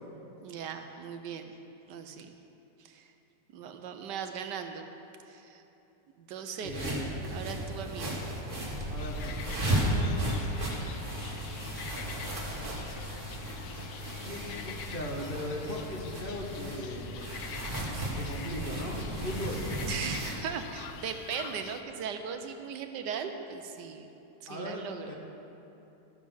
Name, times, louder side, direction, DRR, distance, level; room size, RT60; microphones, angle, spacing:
voice 1, 0.4-1.6 1.9-2.3 2.8-3.1 3.5-4.9 5.3-5.6 6.2-6.9 7.3-8.1 17.9-18.2 19.9-24.1 24.4-25.2, right 7 dB, 75° right, 6 dB, 1.3 m, -38 dB
voice 2, 6.6-7.1 8.9-10.5 14.2-17.1 18.2-19.6 24.5-25.2, left 1 dB, 35° left, -1 dB, 1.1 m, -39 dB
sound 1, 6.6-20.4, right 1 dB, 45° right, 2.4 m, -35 dB
sound 2, 9.0-21.8, left 8 dB, 85° left, 1.3 m, -45 dB
13.5 x 7.3 x 6.2 m, 3.0 s
omnidirectional pair, 1.9 m